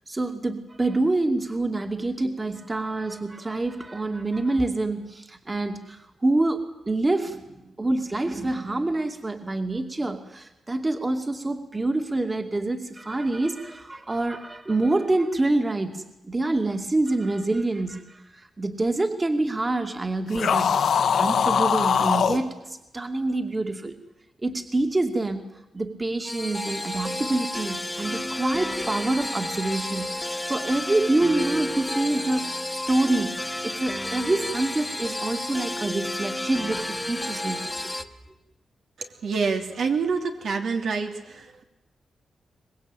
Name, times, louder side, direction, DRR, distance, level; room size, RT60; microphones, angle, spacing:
voice 1, 0.1-20.8 21.1-24.0 24.4-25.5 25.7-37.7, right 2 dB, 25° right, 5 dB, 2.5 m, -26 dB
sound 1, 20.3-22.4, left 7 dB, 80° left, 1.8 m, -21 dB
sound 2, 26.2-38.0, left 1 dB, 10° left, 1.6 m, -31 dB
voice 2, 39.0-41.6, right 5 dB, 75° right, 4 dB, 3.2 m, -27 dB
24.0 x 20.5 x 9.2 m, 0.95 s
cardioid pair, 80°, 0 cm